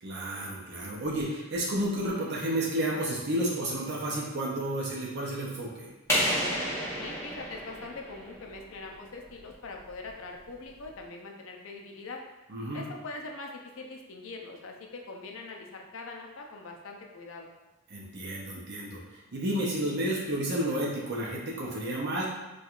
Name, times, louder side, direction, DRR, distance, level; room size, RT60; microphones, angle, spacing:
voice 1, 0.0-5.9 12.5-12.8 17.9-22.2, right 1 dB, 50° right, -4 dB, 0.6 m, -31 dB
sound 1, 6.1-8.7, equal, 10° left, 0.9 m, -30 dB
voice 2, 7.0-12.2 12.7-17.5, left 3 dB, 60° left, 1 dB, 0.5 m, -42 dB
4.4 x 2.3 x 2.4 m, 1.1 s
head